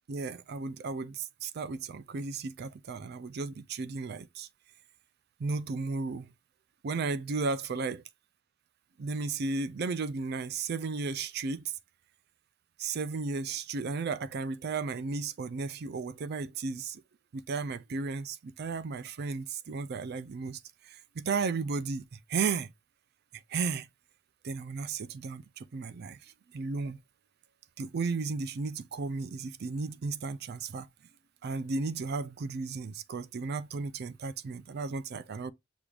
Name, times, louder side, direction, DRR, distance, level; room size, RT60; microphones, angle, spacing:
voice 1, 0.1-4.5 5.4-6.3 6.8-8.0 9.0-11.7 12.8-17.0 17.3-20.6 20.9-22.7 23.5-23.9 24.4-26.2 26.5-27.0 27.8-30.9 31.4-35.5, right 4 dB, 55° right, 0.4 m, -34 dB
6.2 x 3.4 x 2.4 m
head